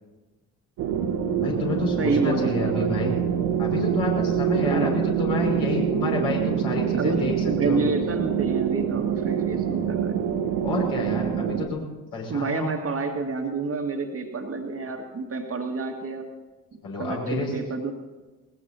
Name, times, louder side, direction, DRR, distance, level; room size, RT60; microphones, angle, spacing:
sound 1, 0.8-11.7, right 9 dB, 55° right, 1.8 m, -25 dB
voice 1, 1.4-3.1 3.6-7.3 7.6-7.8 10.6-12.7 16.8-17.5, left 3 dB, 60° left, -3 dB, 6.2 m, -29 dB
voice 2, 2.0-3.2 4.6-5.3 6.9-10.2 12.3-16.3 16.7-17.9, right 3 dB, 30° right, 2 dB, 2.1 m, -29 dB
21.5 x 20.5 x 2.9 m, 1.2 s
figure-of-eight pair, 50°, 43 cm